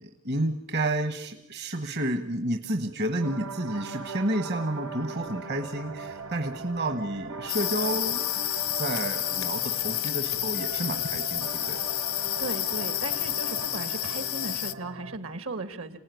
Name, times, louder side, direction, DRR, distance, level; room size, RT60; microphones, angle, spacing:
voice 1, 0.0-8.2 8.7-11.8, right 1 dB, 55° right, 7 dB, 1.3 m, -30 dB
sound 1, 3.2-15.2, right 4 dB, 90° right, 1.3 m, -40 dB
sound 2, 7.5-14.7, left 16 dB, 85° left, 0.9 m, -30 dB
voice 2, 12.4-16.0, right 2 dB, 75° right, 10 dB, 1.8 m, -36 dB
27.5 x 18.0 x 9.3 m, 0.92 s
head